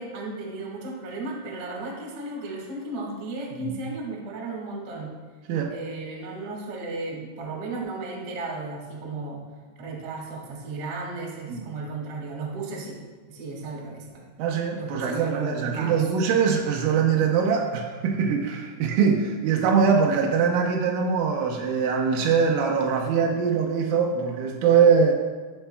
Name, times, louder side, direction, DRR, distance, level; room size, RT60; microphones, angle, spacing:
voice 1, 0.0-5.1 5.7-9.4 9.8-13.0 13.3-14.2 14.8-16.0, right 3 dB, 55° right, -2 dB, 1.8 m, -34 dB
voice 2, 14.4-25.1, right 6 dB, 85° right, 1 dB, 2.1 m, -22 dB
13.0 x 4.4 x 2.2 m, 1.4 s
omnidirectional pair, 4.8 m